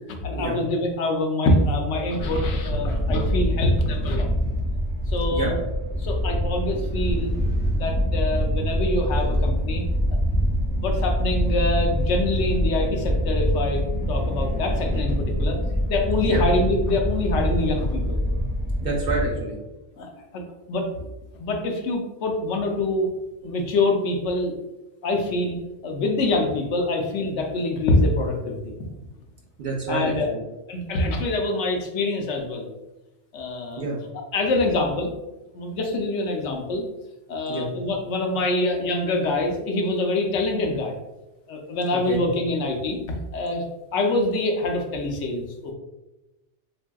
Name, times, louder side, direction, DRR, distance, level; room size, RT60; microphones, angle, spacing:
voice 1, 0.2-4.3 5.1-5.6 6.0-7.3 7.7-9.8 10.8-13.8 14.1-15.6 15.9-18.2 20.0-20.4 20.7-20.9 21.4-23.1 23.4-24.5 25.0-28.7 29.9-30.3 30.7-32.7 33.3-33.8 34.1-35.1 35.5-36.8 37.3-41.0 41.5-43.0 43.3-43.6 43.9-45.7, left 2 dB, 75° left, 2 dB, 0.9 m, -25 dB
sound 1, 2.2-19.3, equal, 25° left, 0.5 m, -25 dB
voice 2, 18.8-19.6 29.6-30.4 33.8-34.0 37.5-37.7 41.9-42.2, right 3 dB, 60° right, -1 dB, 0.7 m, -28 dB
3.4 x 2.6 x 2.2 m, 1.0 s
omnidirectional pair, 1.2 m